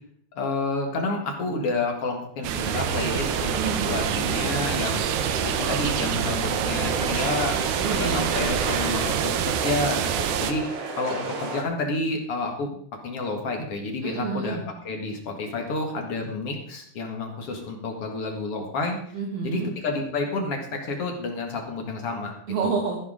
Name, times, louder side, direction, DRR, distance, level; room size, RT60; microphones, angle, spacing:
voice 1, 0.4-3.6 3.9-5.0 5.4-7.7 8.0-10.6 11.0-12.8 13.0-14.6 14.8-19.0 19.4-22.3, left 3 dB, 45° left, 2 dB, 2.2 m, -29 dB
sound 1, 2.4-10.5, right 10 dB, 85° right, 2.9 m, -27 dB
sound 2, 2.6-11.6, right 3 dB, 50° right, 2.0 m, -32 dB
voice 2, 3.5-3.9 7.8-8.3 14.0-14.7 19.1-19.7 22.5-23.0, right 5 dB, 70° right, 1 dB, 3.1 m, -28 dB
14.5 x 12.0 x 3.8 m, 0.62 s
omnidirectional pair, 4.8 m